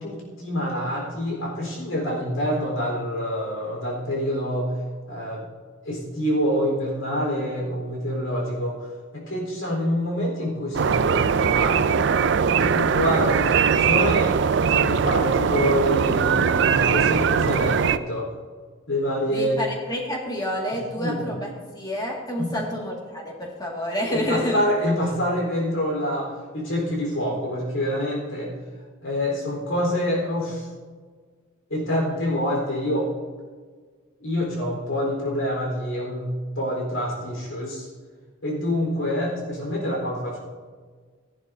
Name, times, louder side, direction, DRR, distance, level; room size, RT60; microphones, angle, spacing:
voice 1, 0.0-4.7 5.1-5.4 5.8-8.8 9.1-12.0 12.4-14.3 14.7-18.3 18.9-19.6 21.0-21.2 22.4-22.6 24.1-28.5 29.0-30.7 31.7-33.1 34.2-37.9 38.4-40.4, equal, 75° left, -2 dB, 4.1 m, -26 dB
sound 1, 10.7-18.0, right 6 dB, 55° right, 0.4 m, -20 dB
voice 2, 19.3-21.5 21.8-24.6, left 1 dB, 20° left, -1 dB, 2.0 m, -28 dB
16.5 x 11.0 x 2.7 m, 1.5 s
head